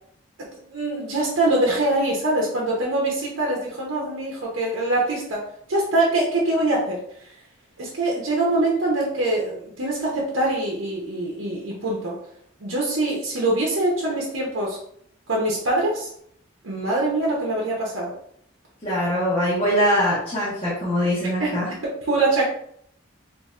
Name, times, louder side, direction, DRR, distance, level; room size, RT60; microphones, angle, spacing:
voice 1, 0.5-5.4 5.7-7.3 7.8-12.2 12.6-14.8 15.3-16.1 16.6-18.1 21.4-22.4, right 2 dB, 90° right, -3 dB, 0.8 m, -24 dB
voice 2, 18.8-21.7, equal, 30° left, -11 dB, 1.1 m, -22 dB
4.1 x 2.6 x 2.4 m, 0.68 s
head